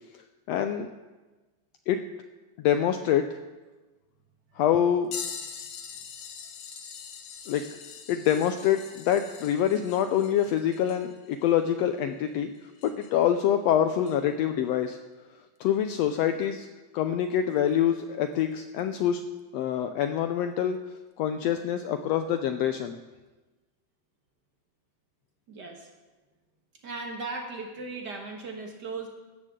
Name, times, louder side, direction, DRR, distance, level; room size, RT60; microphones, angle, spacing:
voice 1, 0.5-0.9 1.9-2.0 2.6-3.2 4.6-5.1 7.5-7.6 8.1-12.5 12.8-15.0 15.6-16.7 16.9-19.2 19.5-20.8 21.2-23.0, left 9 dB, 85° left, 8 dB, 1.4 m, -25 dB
sound 1, 5.1-13.3 14.0-14.2 16.4-16.5 17.6-17.7 18.8-18.9, left 7 dB, 60° left, 1.9 m, -43 dB
voice 2, 25.5-25.9 26.8-29.1, right 3 dB, 50° right, 2 dB, 1.4 m, -37 dB
16.0 x 13.0 x 3.7 m, 1.2 s
omnidirectional pair, 3.5 m